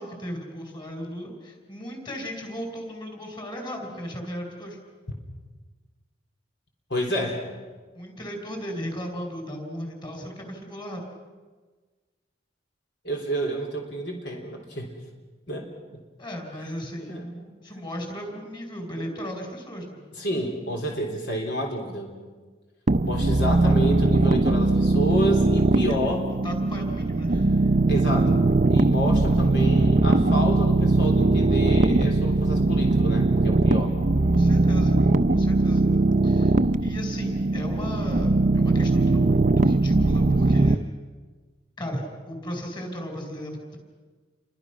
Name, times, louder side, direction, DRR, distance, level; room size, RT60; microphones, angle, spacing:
voice 1, 0.0-4.8 7.9-11.0 16.2-17.2 17.6-20.0 25.8-27.7 34.3-35.0 35.3-35.9 36.2-40.8 41.8-43.8, equal, 25° left, 3 dB, 4.8 m, -36 dB
voice 2, 6.9-7.5 13.0-14.9 15.5-15.7 17.0-17.5 20.2-22.1 23.0-26.3 27.9-28.3 28.7-34.0, equal, 65° left, 1 dB, 3.8 m, -29 dB
sound 1, 22.9-40.7, right 2 dB, 45° right, 0.7 m, -20 dB
29.5 x 24.0 x 6.0 m, 1.4 s
head